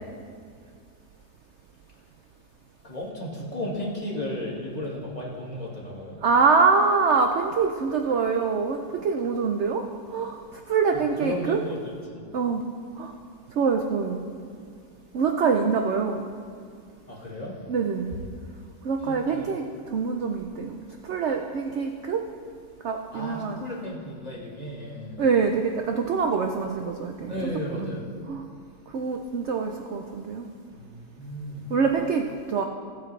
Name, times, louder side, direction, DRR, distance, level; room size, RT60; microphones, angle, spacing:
voice 1, 2.8-6.2 11.1-12.2 17.1-17.6 19.0-19.4 23.1-25.2 27.3-28.0 30.7-31.7, left 1 dB, 25° left, -4 dB, 1.6 m, -34 dB
voice 2, 6.2-9.8 10.1-10.4 10.7-11.6 12.3-12.6 13.0-13.1 13.6-14.3 15.1-16.2 17.7-18.1 18.8-19.7 19.9-20.8 21.0-22.2 22.8-23.6 25.2-27.3 27.8-27.9 28.3-28.4 28.9-30.5 31.7-32.6, right 5 dB, 70° right, 4 dB, 0.6 m, -24 dB
16.0 x 8.4 x 3.2 m, 2.1 s
omnidirectional pair, 1.8 m